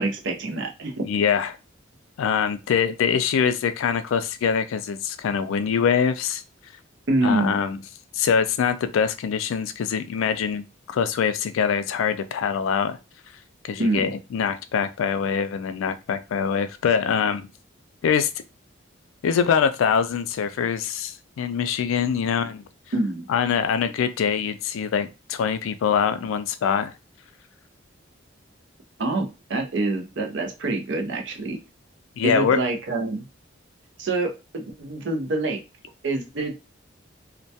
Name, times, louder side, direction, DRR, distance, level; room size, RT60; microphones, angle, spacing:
voice 1, 0.0-1.0 7.1-7.6 13.8-14.1 22.9-23.3 29.0-31.6 32.2-33.2 34.0-35.6 36.0-36.7, right 2 dB, 65° right, 0.5 m, -26 dB
voice 2, 1.1-1.6 2.2-6.4 7.2-7.8 8.1-13.0 13.6-17.5 18.0-18.3 19.2-22.6 23.3-26.9 32.2-32.6, left 7 dB, 85° left, 0.3 m, -24 dB
2.2 x 2.1 x 2.7 m
head